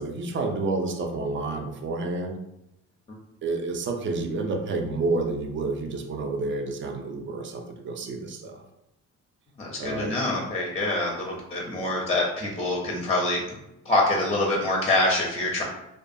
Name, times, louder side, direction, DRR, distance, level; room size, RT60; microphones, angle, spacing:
voice 1, 0.0-2.4 3.4-8.6 9.8-10.1, right 3 dB, 40° right, 4 dB, 0.4 m, -29 dB
voice 2, 9.6-13.4 13.9-15.6, left 2 dB, 20° left, -1 dB, 0.5 m, -25 dB
2.4 x 2.2 x 2.6 m, 0.87 s
cardioid pair, 90°, 30 cm